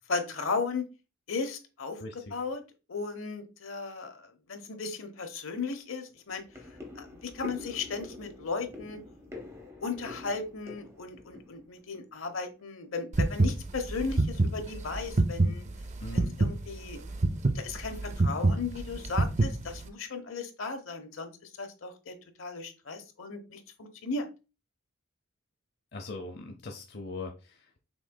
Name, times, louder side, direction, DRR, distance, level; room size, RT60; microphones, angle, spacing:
voice 1, 0.1-0.8 1.3-2.0 2.3-2.6 2.9-6.4 7.0-9.0 9.8-15.7 16.1-17.0 17.5-21.3 21.6-24.2, left 4 dB, 75° left, 6 dB, 0.9 m, -36 dB
voice 2, 2.0-2.3 16.0-16.4 25.9-27.8, left 2 dB, 50° left, 4 dB, 0.6 m, -41 dB
sound 1, 5.0-5.1 5.5-5.7 6.1-12.6 12.9-13.5 13.9-14.1 14.4-14.5 15.0-15.2 15.5-15.6 16.1-16.6 17.2-17.4 17.7-18.4 18.7-18.8, left 3 dB, 15° right, 0.9 m, -47 dB
sound 2, 13.1-19.9, right 2 dB, 35° right, 0.4 m, -26 dB
6.1 x 3.8 x 2.2 m, 0.30 s
head